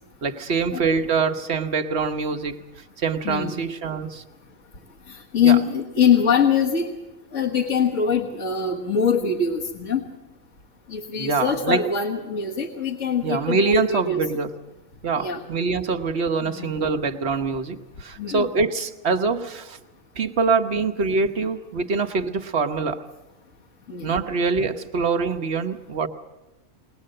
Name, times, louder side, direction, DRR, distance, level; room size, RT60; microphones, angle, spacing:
voice 1, 0.2-2.6 3.0-4.2 5.4-5.6 11.2-11.8 13.2-14.5 15.0-19.8 20.1-23.0 24.0-26.1, right 4 dB, 55° right, 7 dB, 1.3 m, -24 dB
voice 2, 3.2-3.6 5.1-6.9 7.3-10.1 10.9-14.2 15.2-15.4 16.4-16.7 18.2-18.5 23.9-24.1, left 6 dB, 70° left, -3 dB, 2.0 m, -23 dB
21.0 x 20.0 x 7.7 m, 1.0 s
omnidirectional pair, 1.4 m